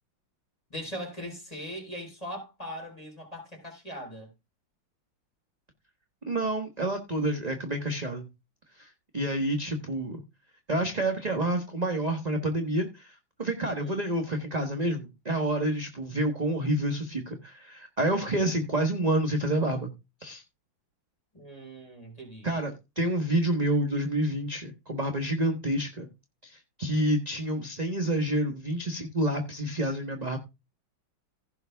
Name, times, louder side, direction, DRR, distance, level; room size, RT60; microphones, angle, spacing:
voice 1, 0.7-4.3 13.6-14.1 21.3-22.5, equal, 20° left, 4.5 m, -40 dB
voice 2, 6.3-8.3 8.7-10.2 10.7-19.9 20.2-20.4 22.4-26.1 26.4-30.4, right 1 dB, 25° right, 1.2 m, -28 dB
16.0 x 6.1 x 3.5 m
omnidirectional pair, 2.1 m